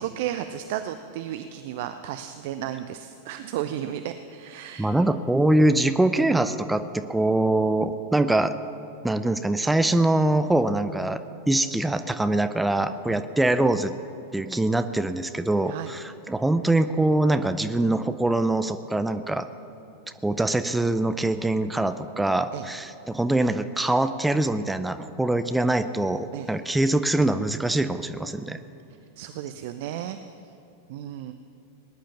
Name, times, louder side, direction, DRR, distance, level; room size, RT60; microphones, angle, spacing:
voice 1, 0.0-5.1 13.1-13.2 15.7-15.9 22.5-22.7 26.3-26.5 29.2-30.2 30.9-31.3, right 11 dB, 50° right, 9 dB, 0.6 m, -33 dB
voice 2, 4.8-8.5 9.0-11.2 11.5-13.9 14.3-19.5 20.2-28.6, right 2 dB, 5° right, 10 dB, 0.6 m, -23 dB
19.5 x 10.0 x 7.1 m, 2.9 s
figure-of-eight pair, 90°, 0 cm